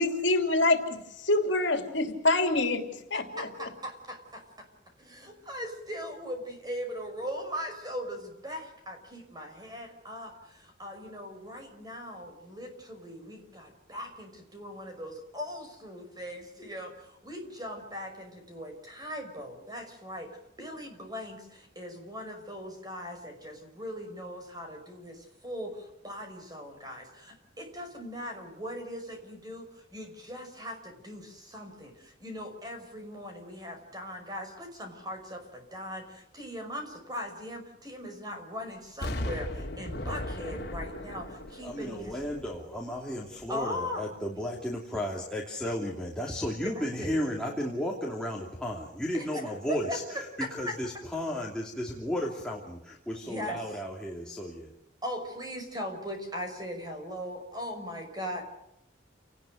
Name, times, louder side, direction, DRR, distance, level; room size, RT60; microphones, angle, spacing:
voice 1, 0.0-3.5, left 2 dB, 70° left, 5 dB, 3.2 m, -26 dB
voice 2, 3.1-4.2 5.1-10.3 10.8-16.9 17.2-20.3 20.6-21.4 21.8-25.1 25.4-25.7 26.0-27.0 27.6-29.6 29.9-30.8 31.0-31.3 31.5-31.9 32.2-35.4 35.7-36.0 36.3-39.5 39.8-41.2 41.5-42.1 43.5-44.1 46.6-47.2 49.1-50.0 50.4-50.8 53.3-53.6 55.0-58.4, equal, 20° right, 5 dB, 5.8 m, -39 dB
Explosion, 39.0-42.9 43.4-43.5, left 1 dB, 55° left, 3.1 m, -37 dB
voice 3, 41.6-54.7, left 1 dB, 5° left, -3 dB, 2.8 m, -34 dB
29.5 x 19.5 x 6.5 m, 0.84 s
head